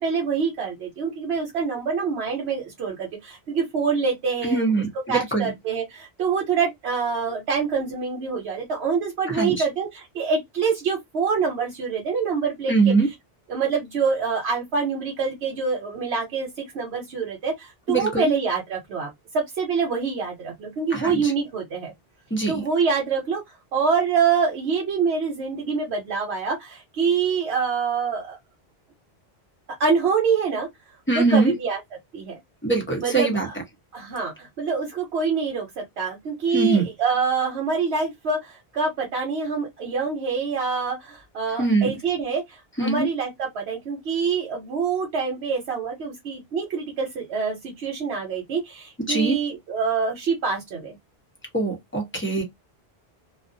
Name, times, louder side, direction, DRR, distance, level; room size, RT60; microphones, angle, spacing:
voice 1, 0.0-4.7 5.1-12.9 13.5-19.1 19.3-21.9 22.5-23.4 23.7-28.4 29.8-30.7 31.1-31.8 32.1-32.4 33.0-33.5 33.9-51.0, right 5 dB, 85° right, 1.0 m, -25 dB
voice 2, 4.4-5.5 9.3-9.6 12.7-13.1 17.9-18.3 20.9-21.2 22.3-22.6 31.1-31.5 32.6-33.5 36.5-36.8 41.6-41.9 42.8-43.1 49.1-49.3 51.5-52.4, right 3 dB, 15° left, 0.7 m, -22 dB
2.4 x 2.1 x 2.6 m
omnidirectional pair, 1.1 m